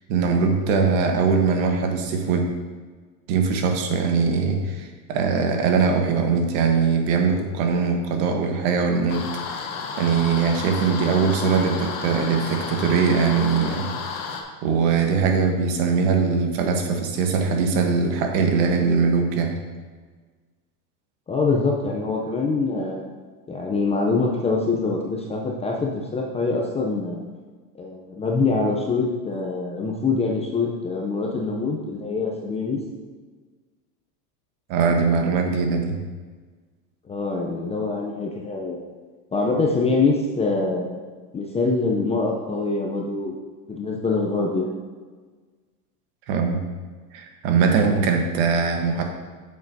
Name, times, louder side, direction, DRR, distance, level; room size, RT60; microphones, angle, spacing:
voice 1, 0.1-2.5 3.3-9.7 10.0-14.3 14.6-19.6 34.7-36.0 46.3-46.6 47.1-49.0, right 5 dB, 55° right, 4 dB, 1.3 m, -21 dB
sound 1, 9.1-14.4, left 5 dB, 60° left, 1.1 m, -32 dB
voice 2, 21.3-23.0 23.5-27.2 27.7-32.8 37.1-38.9 39.3-41.0 41.3-43.3 43.7-44.7, left 3 dB, 15° left, -1 dB, 0.6 m, -24 dB
8.5 x 6.7 x 2.7 m, 1.4 s
supercardioid pair, 125°, 48 cm